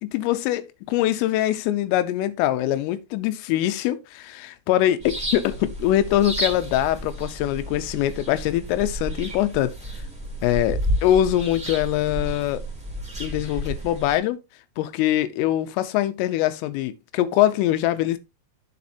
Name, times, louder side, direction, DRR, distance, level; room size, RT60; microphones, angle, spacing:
voice 1, 0.0-9.7 10.4-12.6 13.2-14.4 14.8-18.2, left 13 dB, 90° left, 3.4 m, -23 dB
sound 1, 5.0-14.2, equal, 5° right, 0.9 m, -31 dB
8.5 x 7.2 x 2.7 m
omnidirectional pair, 5.7 m